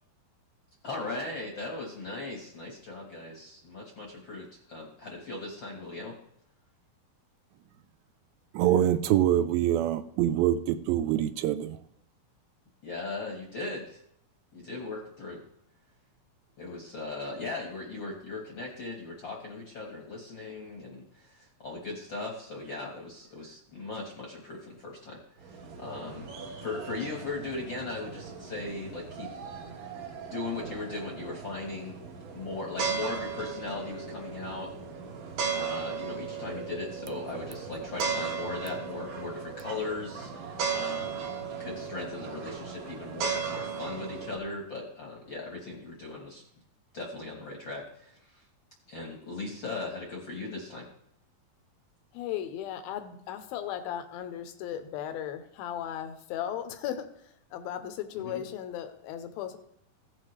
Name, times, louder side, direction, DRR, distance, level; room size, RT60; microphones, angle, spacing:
voice 1, 0.8-6.1 12.8-14.0 14.5-15.4 16.6-26.3 26.6-29.3 30.3-32.0 32.3-34.7 35.5-46.4 46.9-48.4 48.9-50.9 58.2-58.4, left 3 dB, 55° left, 1.3 m, -38 dB
voice 2, 8.5-11.8, right 11 dB, 85° right, 2.4 m, -25 dB
sound 1, 25.4-44.4, right 6 dB, 65° right, 2.9 m, -37 dB
voice 3, 52.1-59.6, left 10 dB, 85° left, 2.6 m, -36 dB
16.0 x 7.5 x 3.2 m
omnidirectional pair, 4.2 m